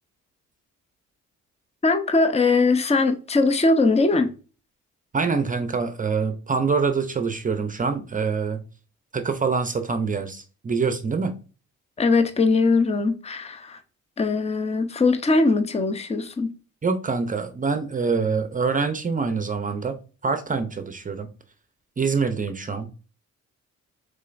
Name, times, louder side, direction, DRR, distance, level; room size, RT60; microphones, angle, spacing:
voice 1, 1.8-4.3 12.0-13.8 14.2-16.5, left 3 dB, 20° left, 0.7 m, -21 dB
voice 2, 5.1-8.6 9.1-11.3 16.8-21.3 22.0-22.9, right 5 dB, 25° right, 0.6 m, -25 dB
5.4 x 3.9 x 2.5 m
cardioid pair, 90°, 30 cm